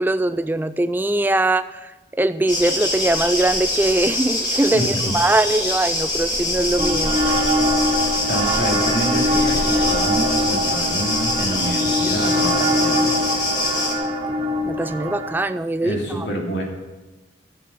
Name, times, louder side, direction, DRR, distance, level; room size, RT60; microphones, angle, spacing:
voice 1, 0.0-1.6 2.2-4.9 5.1-7.4 14.7-16.0, right 2 dB, 10° right, 12 dB, 0.3 m, -21 dB
sound 1, 2.5-13.9, left 1 dB, 25° left, 2.0 m, -24 dB
voice 2, 4.7-5.1 8.3-13.1 15.8-16.6, equal, 70° left, -1 dB, 2.7 m, -27 dB
sound 2, 6.8-15.4, left 1 dB, 30° right, 1.4 m, -23 dB
12.5 x 8.8 x 5.7 m, 1.1 s
head